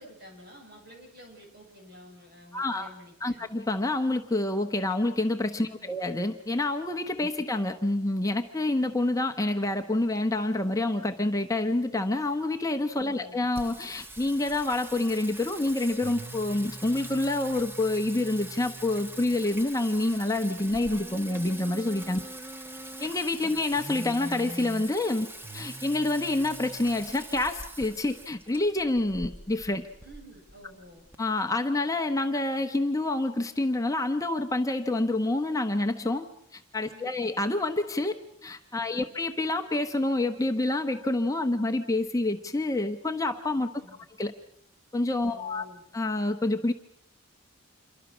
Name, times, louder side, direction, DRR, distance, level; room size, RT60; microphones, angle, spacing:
voice 1, 0.0-3.5 5.7-6.0 13.0-13.4 22.2-22.3 23.5-23.6 30.0-31.1 36.9-37.2 38.9-39.0 43.7-44.1 45.2-45.8, equal, 50° right, 2 dB, 7.3 m, -51 dB
voice 2, 2.5-2.9 3.2-22.2 23.0-25.3 25.5-29.9 31.2-36.3 36.5-38.1 38.4-43.7 44.2-44.3 44.9-45.7 45.9-46.7, left 2 dB, 15° left, 5 dB, 0.9 m, -27 dB
Singing, 13.6-31.2, right 1 dB, 10° right, 1.1 m, -42 dB
27.5 x 23.5 x 6.2 m, 0.76 s
head